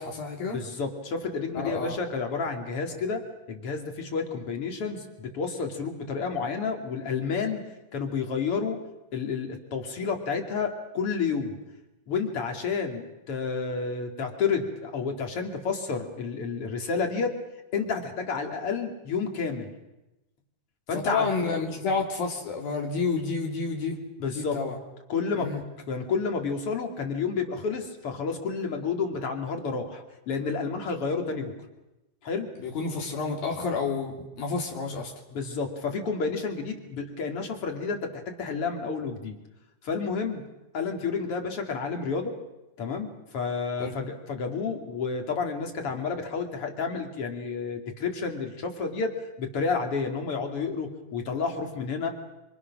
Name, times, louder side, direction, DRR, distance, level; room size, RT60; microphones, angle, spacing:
voice 1, 0.0-0.6 1.5-2.0 20.9-24.0 24.4-24.8 25.4-25.6 32.6-35.1 43.8-43.9, left 4 dB, 70° left, 0 dB, 4.9 m, -30 dB
voice 2, 0.5-3.2 3.5-7.6 7.9-8.8 9.1-11.6 12.1-17.3 17.7-19.7 20.9-21.3 24.2-24.6 25.1-25.5 25.9-31.5 32.2-32.5 35.3-39.4 39.8-40.4 40.7-42.4 42.8-52.1, left 5 dB, 40° left, 3 dB, 3.3 m, -30 dB
27.0 x 26.5 x 6.2 m, 1.0 s
omnidirectional pair, 4.4 m